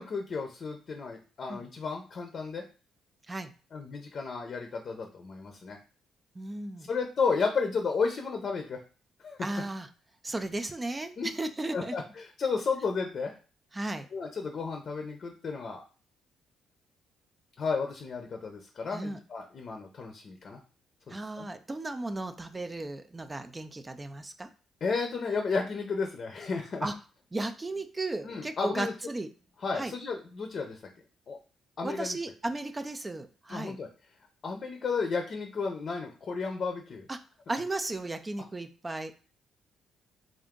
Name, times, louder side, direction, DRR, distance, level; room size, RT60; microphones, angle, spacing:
voice 1, 0.0-2.6 3.7-5.8 6.9-8.8 9.2-9.4 11.2-11.3 11.7-13.4 14.1-15.8 17.6-20.6 21.1-21.5 24.8-26.9 28.2-28.9 29.6-30.8 31.3-31.4 31.8-32.2 33.5-33.9 34.4-37.1, left 4 dB, 50° left, 3 dB, 0.6 m, -33 dB
voice 2, 6.4-6.9 9.4-9.9 10.2-12.0 13.7-14.1 18.9-19.2 21.1-24.5 26.8-26.9 27.3-29.3 29.8-29.9 31.8-33.8 37.1-37.2 37.5-39.2, right 2 dB, 20° right, 7 dB, 0.4 m, -35 dB
3.6 x 2.5 x 3.7 m, 0.37 s
cardioid pair, 90°, 0 cm